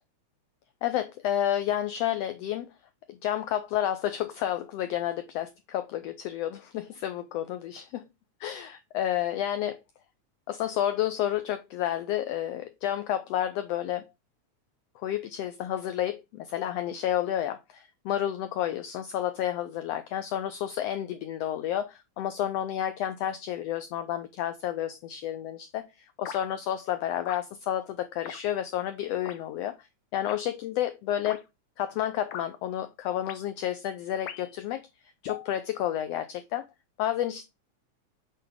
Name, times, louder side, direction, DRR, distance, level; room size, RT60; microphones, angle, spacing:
voice 1, 0.8-2.7 3.1-8.1 8.4-9.8 10.5-14.1 15.0-29.9 30.1-31.4 31.8-34.8 35.2-36.6 37.0-37.4, left 11 dB, 85° left, 1.4 m, -30 dB
sound 1, 26.2-26.4 27.2-27.4 28.2-28.4 29.2-29.4 30.2-30.4 31.2-31.4 32.3-32.5 33.2-33.4 34.3-34.6 35.2-35.5, left 9 dB, 70° left, 1.4 m, -39 dB
7.6 x 4.3 x 3.2 m
omnidirectional pair, 3.4 m